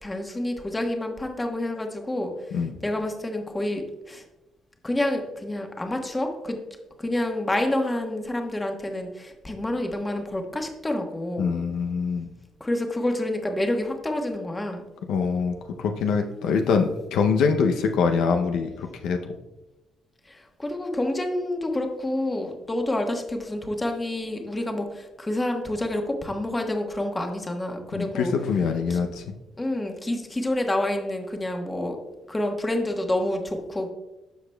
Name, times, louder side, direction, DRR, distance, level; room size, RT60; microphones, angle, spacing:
voice 1, 0.0-4.2 4.8-6.6 7.0-11.6 12.6-14.8 20.3-28.3 28.9-29.0 29.6-32.0 32.3-33.9, left 1 dB, 15° left, 4 dB, 1.1 m, -28 dB
voice 2, 11.4-12.3 15.1-19.2 28.0-29.2, left 5 dB, 85° left, 4 dB, 0.5 m, -24 dB
13.0 x 4.9 x 2.2 m, 1.0 s
cardioid pair, 90°, 0 cm